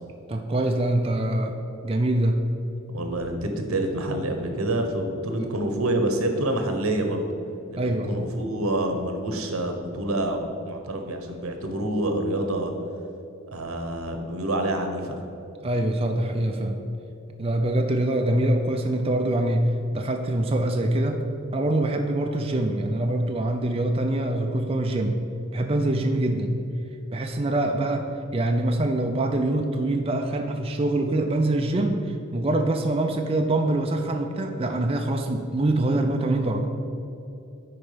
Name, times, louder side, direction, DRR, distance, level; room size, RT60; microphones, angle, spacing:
voice 1, 0.3-1.6 1.8-2.4 5.4-5.5 7.8-8.3 15.6-16.8 17.4-21.2 21.5-25.2 25.5-26.6 27.1-36.7, right 1 dB, 25° right, 3 dB, 0.4 m, -24 dB
voice 2, 2.9-7.2 7.7-12.7 13.5-15.1, right 1 dB, 85° right, 5 dB, 1.1 m, -27 dB
9.8 x 4.5 x 5.1 m, 2.8 s
head